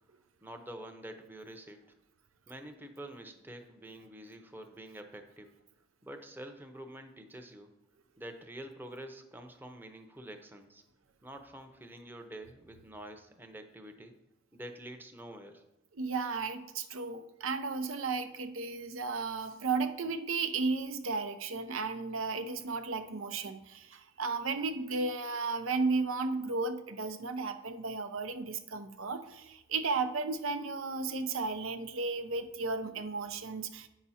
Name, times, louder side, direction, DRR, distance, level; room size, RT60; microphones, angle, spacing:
voice 1, 0.4-1.8 2.5-5.5 6.0-7.7 8.2-10.8 11.2-14.1 14.5-15.6, right 1 dB, 10° right, 5 dB, 0.7 m, -47 dB
voice 2, 15.9-33.9, right 4 dB, 85° right, 9 dB, 0.7 m, -34 dB
9.4 x 5.9 x 4.2 m, 0.94 s
head